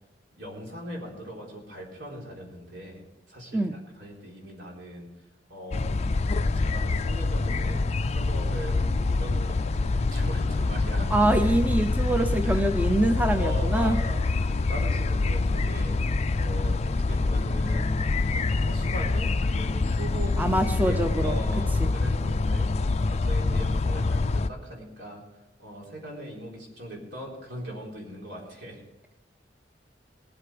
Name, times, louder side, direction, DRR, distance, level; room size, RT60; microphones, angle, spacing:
voice 1, 0.4-5.1 5.5-5.9 6.3-7.8 8.1-11.1 12.4-12.7 13.3-16.0 16.4-17.9 18.3-20.3 20.8-22.7 23.0-25.2 25.6-28.8, equal, 75° right, -2 dB, 4.0 m, -40 dB
sound 1, 5.7-24.5, left 3 dB, 40° left, 0.4 m, -26 dB
voice 2, 11.1-14.0 20.4-21.4 21.8-21.9, right 1 dB, 10° right, 7 dB, 0.6 m, -24 dB
19.0 x 8.1 x 5.1 m, 0.97 s
head